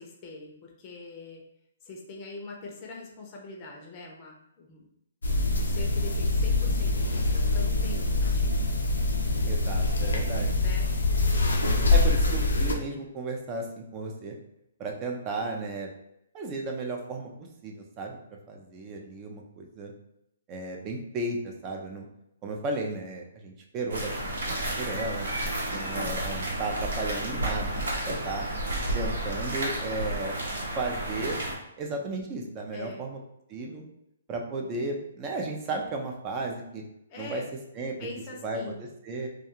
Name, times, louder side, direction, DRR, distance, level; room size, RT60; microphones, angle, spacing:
voice 1, 0.0-1.4 1.8-4.9 5.5-8.7 10.6-10.9 32.7-33.0 37.1-37.5 38.0-38.8, left 2 dB, 30° left, -1 dB, 0.5 m, -43 dB
sound 1, 5.2-12.8, left 2 dB, 90° left, 0.5 m, -24 dB
voice 2, 9.5-10.5 11.4-14.4 14.8-15.9 16.3-17.3 17.6-18.2 18.5-19.9 20.5-22.1 22.4-24.1 24.5-25.3 25.7-28.5 28.9-30.3 30.8-31.4 31.8-33.2 33.5-33.8 34.3-36.8 37.2-37.4 37.8-38.1 38.4-39.3, right 2 dB, 25° right, 2 dB, 0.4 m, -34 dB
sound 2, 23.9-31.6, right 1 dB, 80° right, 0.9 m, -31 dB
2.3 x 2.3 x 2.9 m, 0.81 s
hypercardioid pair, 150°, 0 cm